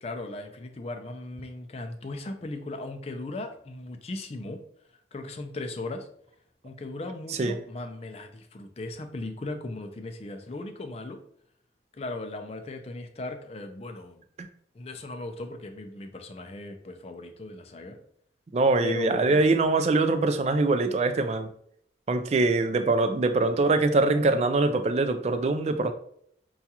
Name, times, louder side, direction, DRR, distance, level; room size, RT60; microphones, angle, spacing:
voice 1, 0.0-4.6 5.1-6.1 6.6-11.2 11.9-14.2 14.8-18.0 18.8-19.4, left 2 dB, 35° left, 6 dB, 0.4 m, -37 dB
voice 2, 18.5-21.5 22.1-25.9, right 3 dB, 35° right, 9 dB, 0.3 m, -23 dB
5.6 x 2.3 x 2.8 m, 0.67 s
head